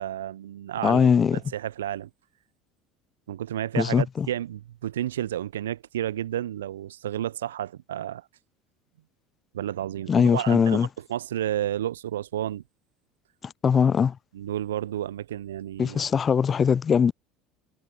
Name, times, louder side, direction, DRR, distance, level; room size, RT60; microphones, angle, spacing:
voice 1, 0.0-2.1 3.3-8.2 9.5-12.6 14.3-16.1, right 11 dB, 80° right, 0.4 m, -31 dB
voice 2, 0.8-1.4 3.8-4.3 10.1-10.9 13.6-14.2 15.8-17.1, left 7 dB, 35° left, 0.4 m, -21 dB
hypercardioid pair, 70°, 0 cm